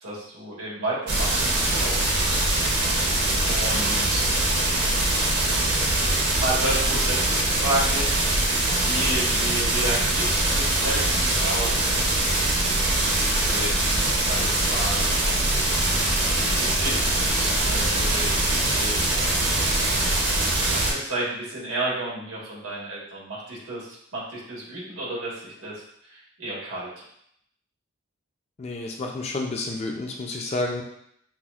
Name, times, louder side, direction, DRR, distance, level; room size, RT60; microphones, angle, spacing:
voice 1, 0.0-2.7 3.4-4.2 6.4-8.4 8.8-11.9 13.2-13.7 14.2-15.1 16.6-19.2 20.6-26.9, right 1 dB, 85° right, -5 dB, 1.4 m, -32 dB
sound 1, 1.1-20.9, right 1 dB, 55° right, 0.7 m, -23 dB
voice 2, 28.6-30.8, left 2 dB, 30° left, 1 dB, 0.4 m, -30 dB
5.7 x 2.0 x 2.4 m, 0.71 s
head